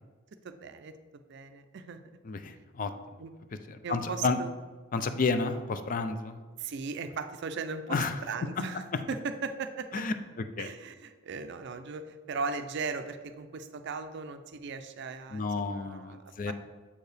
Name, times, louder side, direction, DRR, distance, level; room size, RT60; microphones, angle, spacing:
voice 1, 0.4-0.9 1.3-2.0 3.2-3.3 3.8-4.5 6.6-8.0 8.3-10.0 10.6-16.5, right 4 dB, 60° right, 9 dB, 0.4 m, -38 dB
voice 2, 2.2-2.9 3.7-4.4 4.9-6.4 7.9-8.2 9.9-10.1 10.6-10.7 15.3-16.5, left 4 dB, 40° left, 9 dB, 0.4 m, -31 dB
7.2 x 4.5 x 3.3 m, 1.4 s
head